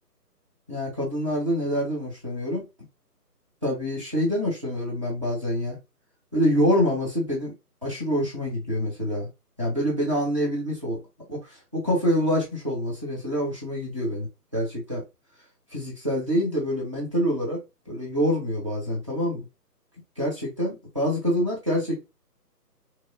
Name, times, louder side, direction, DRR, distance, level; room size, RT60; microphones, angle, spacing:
voice 1, 0.7-2.6 3.6-5.8 6.3-7.5 7.8-9.3 9.6-11.0 11.3-14.3 14.5-15.0 15.7-17.6 17.9-19.4 20.2-22.0, equal, 20° right, 0.7 m, -26 dB
2.9 x 2.3 x 2.3 m
hypercardioid pair, 165°, 48 cm